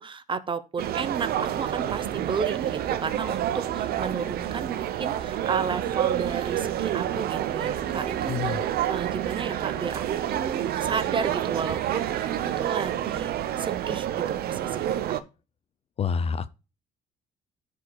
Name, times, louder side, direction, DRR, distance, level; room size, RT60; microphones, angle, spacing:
voice 1, 0.0-12.3 12.6-15.0, right 5 dB, 30° right, 0.8 m, -33 dB
sound 1, 0.8-15.2, right 11 dB, 65° right, 0.7 m, -28 dB
voice 2, 8.3-8.6 16.0-16.5, left 6 dB, 35° left, 0.5 m, -27 dB
13.5 x 5.0 x 2.3 m
cardioid pair, 110°, 17 cm